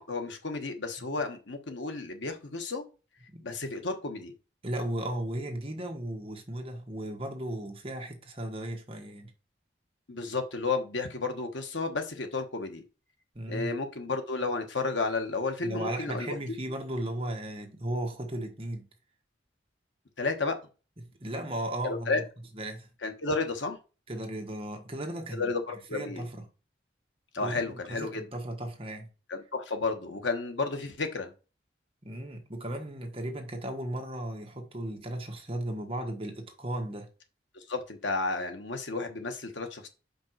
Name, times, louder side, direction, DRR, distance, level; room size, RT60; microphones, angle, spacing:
voice 1, 0.0-2.8 3.4-4.3 10.1-12.8 13.5-16.4 20.2-20.6 21.8-22.2 23.0-23.8 25.4-26.2 27.3-28.2 29.3-31.3 37.5-39.9, left 3 dB, 85° left, 1.3 m, -32 dB
voice 2, 4.6-9.3 13.3-13.7 15.6-18.8 21.0-22.1 22.5-22.9 24.1-26.4 27.4-29.1 32.0-37.1, right 1 dB, 30° right, 1.3 m, -36 dB
5.3 x 5.2 x 4.6 m
head